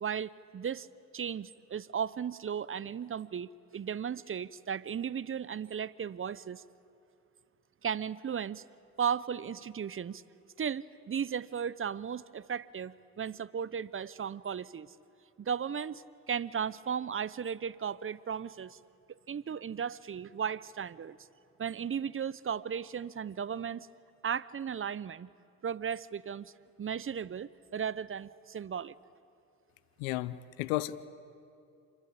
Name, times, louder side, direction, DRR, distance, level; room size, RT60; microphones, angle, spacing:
voice 1, 0.0-0.9 1.1-6.6 7.8-8.6 9.0-10.2 10.6-14.9 15.4-18.8 19.3-21.2 21.6-23.9 24.2-25.3 25.6-26.5 26.8-28.9, right 7 dB, 30° right, 19 dB, 0.8 m, -35 dB
voice 2, 30.0-31.1, left 16 dB, 85° left, 16 dB, 0.8 m, -33 dB
27.5 x 23.0 x 8.4 m, 2.6 s
hypercardioid pair, 55°, 40 cm